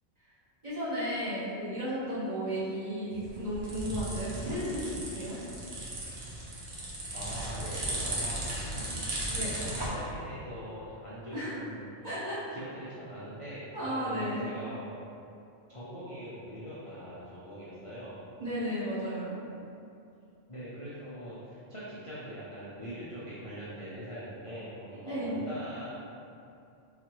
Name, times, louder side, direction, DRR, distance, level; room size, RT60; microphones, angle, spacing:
voice 1, 0.6-5.4 9.3-9.5 11.3-11.5 12.0-12.6 13.7-14.5 18.4-19.4 25.0-25.3, equal, 30° right, -13 dB, 1.3 m, -34 dB
sound 1, 3.1-9.9, right 1 dB, 50° right, 0.7 m, -36 dB
voice 2, 7.1-8.7 9.5-11.9 12.5-14.9 15.7-18.2 20.5-25.9, equal, 40° left, -10 dB, 0.4 m, -42 dB
4.0 x 2.4 x 3.0 m, 2.6 s
omnidirectional pair, 1.3 m